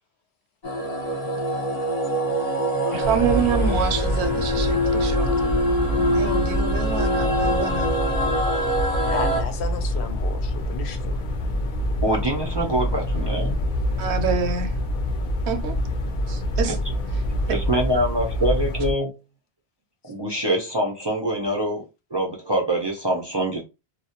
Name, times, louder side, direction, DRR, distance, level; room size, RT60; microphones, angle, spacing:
sound 1, 0.6-9.4, equal, 40° left, 0.9 m, -24 dB
voice 1, 2.9-5.5 5.9-7.9 14.0-14.8 15.5-15.7 16.3-16.8, right 6 dB, 80° right, 0.8 m, -27 dB
sound 2, 3.0-18.9, left 1 dB, 60° left, 0.6 m, -26 dB
voice 2, 9.0-11.2, left 4 dB, 90° left, 0.9 m, -33 dB
voice 3, 12.0-13.6 17.5-19.2 20.0-21.8 22.1-23.7, right 1 dB, 45° right, 0.3 m, -24 dB
2.2 x 2.0 x 2.7 m
omnidirectional pair, 1.1 m